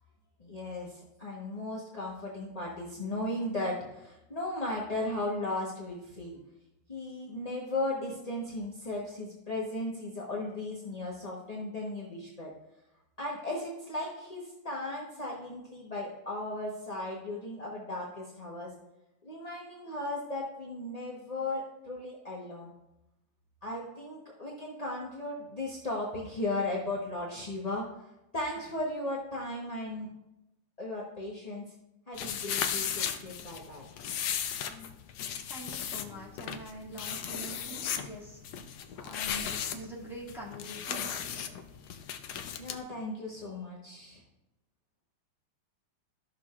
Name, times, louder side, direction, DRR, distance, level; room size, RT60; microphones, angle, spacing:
voice 1, 0.4-6.4 6.9-12.5 13.2-18.7 19.2-22.7 23.6-30.1 30.8-31.6 32.1-33.9 41.5-41.6 42.6-44.2, left 2 dB, 30° left, -4 dB, 0.7 m, -36 dB
sound 1, 32.1-42.8, left 8 dB, 70° left, 0.9 m, -36 dB
voice 2, 35.5-38.4 39.0-41.5, right 1 dB, ahead, -6 dB, 1.9 m, -44 dB
14.0 x 6.1 x 2.4 m, 0.90 s
omnidirectional pair, 2.4 m